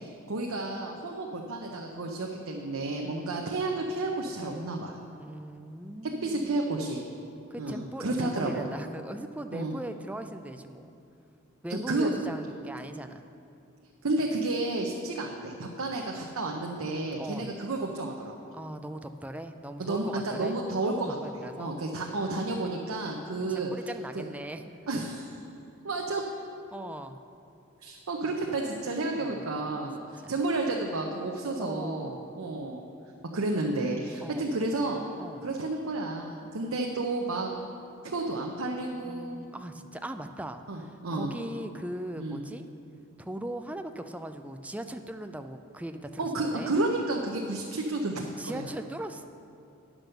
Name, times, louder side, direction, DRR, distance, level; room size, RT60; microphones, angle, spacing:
voice 1, 0.0-4.9 6.2-7.0 7.6-8.6 9.5-9.7 11.7-12.4 14.0-18.4 19.8-21.1 21.6-23.7 24.1-24.3 24.9-25.4 25.8-26.2 27.8-32.8 33.3-35.0 35.4-37.5 38.0-39.4 40.7-41.3 42.2-42.4 46.2-48.7, right 2 dB, 80° right, 0 dB, 0.8 m, -31 dB
voice 2, 3.0-3.3 5.2-6.6 7.5-10.9 11.6-13.3 17.2-17.5 18.5-20.6 20.9-21.8 23.1-24.7 26.7-27.2 29.2-29.4 30.2-30.3 31.6-32.3 34.2-34.5 35.2-35.5 39.0-42.7 43.2-46.7 48.4-49.2, right 1 dB, 5° right, 7 dB, 0.4 m, -40 dB
10.0 x 6.1 x 6.6 m, 2.5 s
head